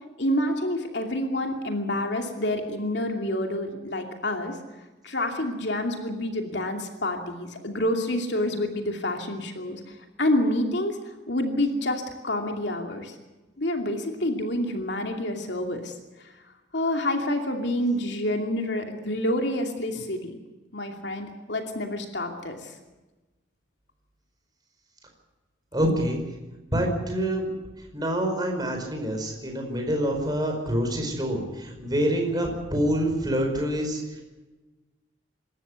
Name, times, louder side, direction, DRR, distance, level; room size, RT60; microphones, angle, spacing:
voice 1, 0.2-4.5 5.0-9.8 10.2-11.0 11.3-13.1 13.6-15.9 16.7-20.4 20.7-22.6, left 1 dB, 65° left, 3 dB, 2.6 m, -28 dB
voice 2, 25.7-26.2 26.6-27.5 27.9-34.2, equal, 20° right, 3 dB, 5.2 m, -26 dB
26.5 x 13.5 x 8.3 m, 1.1 s
head